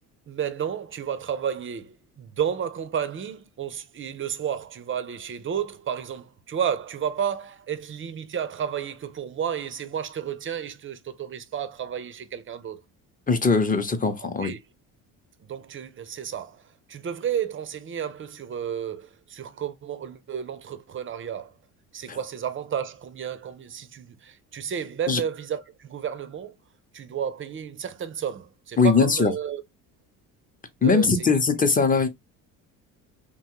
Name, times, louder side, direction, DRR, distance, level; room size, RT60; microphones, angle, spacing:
voice 1, 0.3-12.8 14.2-14.6 15.4-21.5 21.9-26.6 26.9-29.6 30.8-31.4, right 8 dB, 30° right, 0.5 m, -32 dB
voice 2, 13.3-14.5 22.1-22.2 25.1-25.2 28.8-29.3 30.8-32.1, left 4 dB, 20° left, 0.7 m, -21 dB
3.0 x 2.3 x 2.9 m
hypercardioid pair, 65°, 43 cm